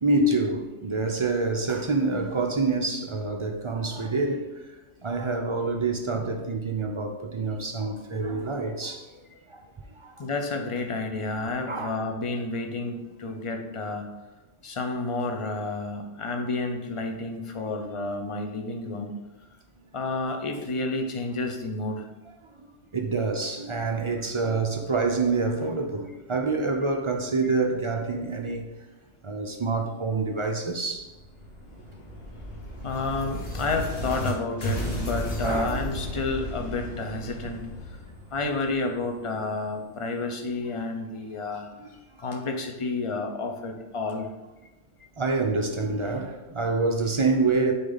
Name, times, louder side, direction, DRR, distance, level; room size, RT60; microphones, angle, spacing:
voice 1, 0.0-4.7 5.0-9.1 9.5-9.7 9.9-10.3 11.7-12.0 22.4-22.6 22.9-28.7 29.2-31.1 35.4-35.8 41.8-41.9 42.2-42.4 45.2-47.7, right 3 dB, 40° right, 0.4 m, -27 dB
voice 2, 10.2-14.1 14.6-19.1 19.9-22.1 32.8-37.9 38.3-41.7 42.2-44.3, left 3 dB, 35° left, 0.6 m, -30 dB
sound 1, 30.9-34.3 34.6-39.3, equal, 55° left, 1.5 m, -34 dB
6.5 x 4.4 x 4.0 m
omnidirectional pair, 1.3 m